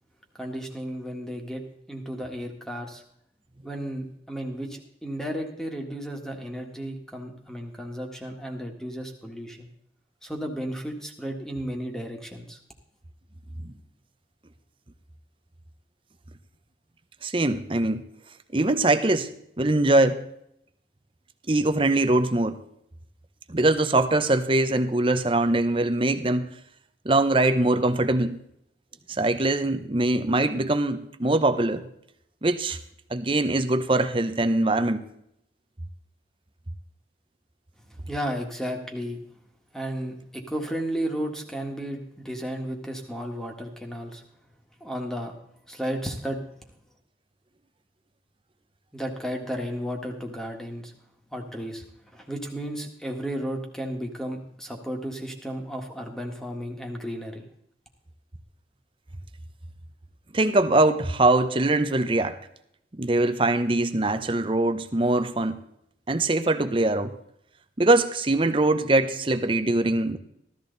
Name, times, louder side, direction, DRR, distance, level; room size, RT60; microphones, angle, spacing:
voice 1, 0.4-1.6 1.9-3.0 3.6-9.7 10.2-12.6 38.1-39.2 39.7-44.2 44.8-45.4 45.7-46.4 48.9-50.9 51.3-57.4, equal, 5° left, 2 dB, 1.7 m, -33 dB
voice 2, 17.2-18.0 18.5-19.3 19.6-20.2 21.5-22.6 23.5-26.5 27.0-28.4 29.1-31.9 32.4-32.8 33.1-35.0 60.3-62.4 62.9-65.6 66.1-67.1 67.8-70.2, right 2 dB, 30° right, 10 dB, 0.9 m, -22 dB
15.5 x 13.5 x 4.0 m, 0.74 s
head